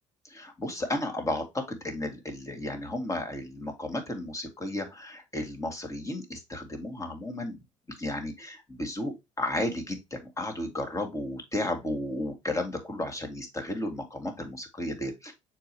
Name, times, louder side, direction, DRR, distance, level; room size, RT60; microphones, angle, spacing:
voice 1, 0.2-7.6 8.0-15.3, left 1 dB, 20° left, 4 dB, 2.3 m, -33 dB
6.8 x 4.8 x 3.0 m, 0.21 s
hypercardioid pair, 65°, 17 cm